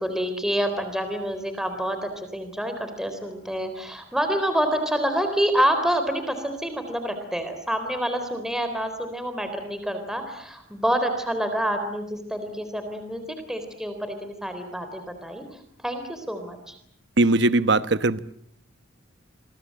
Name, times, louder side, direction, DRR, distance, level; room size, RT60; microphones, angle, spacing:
voice 1, 0.0-15.4 15.8-16.7, equal, 5° right, 7 dB, 3.8 m, -27 dB
voice 2, 17.2-18.2, right 2 dB, 55° right, 13 dB, 1.0 m, -20 dB
28.5 x 23.5 x 7.8 m, 0.68 s
head